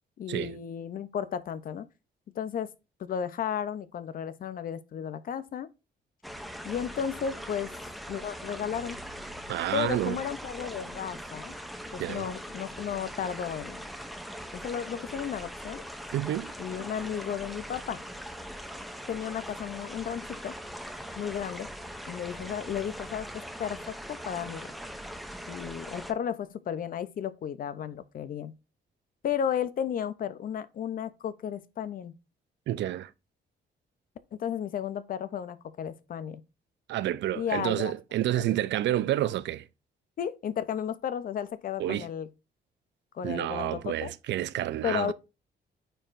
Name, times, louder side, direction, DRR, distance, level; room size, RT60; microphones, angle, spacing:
voice 1, 0.2-1.9 2.4-2.7 3.0-5.7 6.6-7.7 8.1-9.0 9.7-11.5 11.9-13.8 14.6-15.8 16.6-18.0 19.1-20.6 21.2-21.7 22.1-23.3 23.6-24.7 25.5-28.5 29.2-32.1 34.3-36.4 37.3-37.9 38.3-38.5 40.2-42.3 43.1-44.1 44.8-45.1, left 8 dB, 50° left, 0.5 m, -33 dB
sound 1, 6.2-26.1, equal, ahead, 0.5 m, -41 dB
sound 2, 8.6-11.5, right 3 dB, 80° left, 2.9 m, -55 dB
voice 2, 9.5-10.2 12.0-12.3 16.1-16.5 32.7-33.1 36.9-39.7 41.8-42.1 43.2-45.1, right 13 dB, 85° right, 0.4 m, -29 dB
9.0 x 4.5 x 2.5 m
cardioid pair, 145°, 18 cm